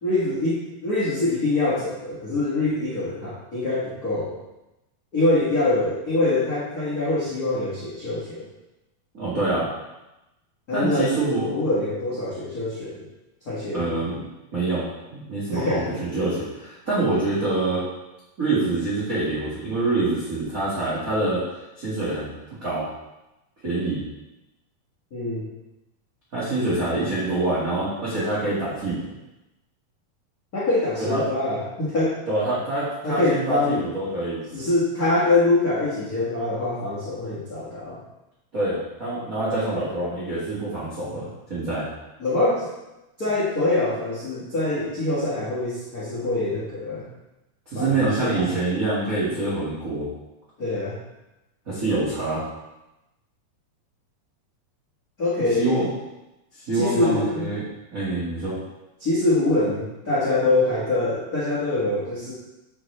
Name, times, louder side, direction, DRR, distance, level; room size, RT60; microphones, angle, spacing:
voice 1, 0.0-4.3 5.1-8.5 10.7-11.1 11.4-13.1 13.4-14.0 15.5-16.0 25.1-25.4 30.5-32.2 33.0-33.9 34.5-38.0 42.2-42.7 43.2-47.1 47.7-48.5 50.6-51.0 55.2-55.8 56.7-57.5 59.0-62.3, left 2 dB, 40° left, -10 dB, 1.3 m, -24 dB
voice 2, 9.1-9.7 10.7-11.5 13.7-14.1 14.5-17.8 18.4-21.4 21.8-22.3 22.6-22.9 23.6-24.0 26.3-29.0 31.0-31.2 32.3-34.4 38.5-41.8 47.7-50.1 51.7-52.4 55.6-55.9 56.6-57.6 57.9-58.5, right 2 dB, 35° right, -10 dB, 1.3 m, -25 dB
8.3 x 6.1 x 3.3 m, 0.97 s
omnidirectional pair, 4.5 m